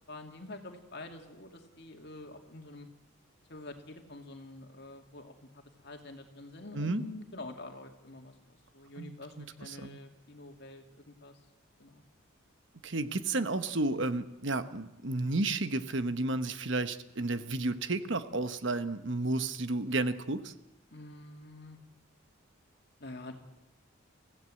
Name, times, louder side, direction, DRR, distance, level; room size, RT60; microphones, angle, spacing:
voice 1, 0.1-2.9 3.5-11.4 11.8-12.0 20.9-21.8 23.0-23.3, left 2 dB, 50° left, 4 dB, 2.5 m, -47 dB
voice 2, 9.0-10.0 12.8-20.5, right 2 dB, 60° right, 11 dB, 1.1 m, -32 dB
24.5 x 16.0 x 7.7 m, 0.96 s
head